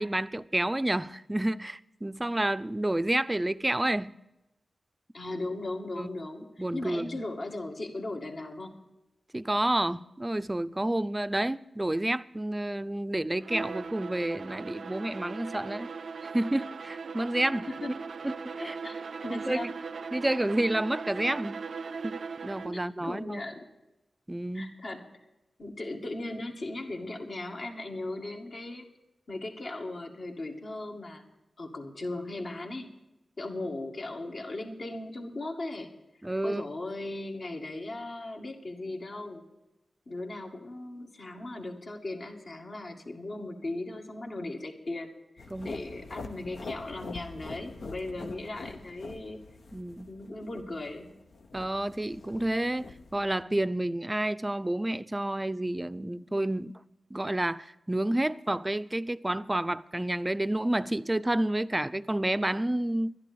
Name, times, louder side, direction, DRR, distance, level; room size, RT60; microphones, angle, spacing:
voice 1, 0.0-4.1 6.0-6.1 6.6-7.2 9.3-15.9 16.2-17.7 18.2-18.8 19.3-19.7 20.1-21.6 22.0-23.4 24.3-24.7 36.2-36.6 45.5-45.7 48.2-48.3 49.7-50.1 51.5-56.7 57.1-63.1, right 1 dB, 20° right, 0.5 m, -30 dB
voice 2, 5.1-8.9 17.7-17.9 18.6-19.7 22.7-23.7 24.5-25.1 25.6-28.9 29.3-31.2 31.6-32.9 33.4-35.9 36.4-39.4 40.1-49.4 50.1-51.1, left 2 dB, 65° left, 2.1 m, -38 dB
Bowed string instrument, 13.4-22.9, right 5 dB, 75° right, 0.4 m, -39 dB
sound 1, 45.4-53.4, left 3 dB, 85° left, 0.9 m, -45 dB
12.0 x 10.5 x 6.9 m
cardioid pair, 50°, 0 cm